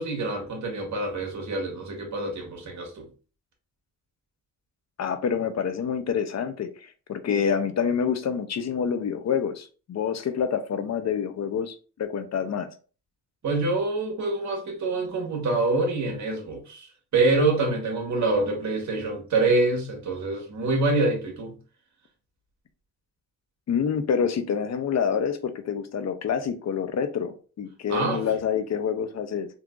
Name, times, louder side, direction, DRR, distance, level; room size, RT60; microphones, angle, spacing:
voice 1, 0.0-3.1 13.4-21.6 27.9-28.2, right 3 dB, 60° right, 1.4 m, -26 dB
voice 2, 5.0-12.7 23.7-29.5, left 7 dB, 55° left, 0.6 m, -27 dB
3.7 x 2.8 x 2.4 m
cardioid pair, 75°, 32 cm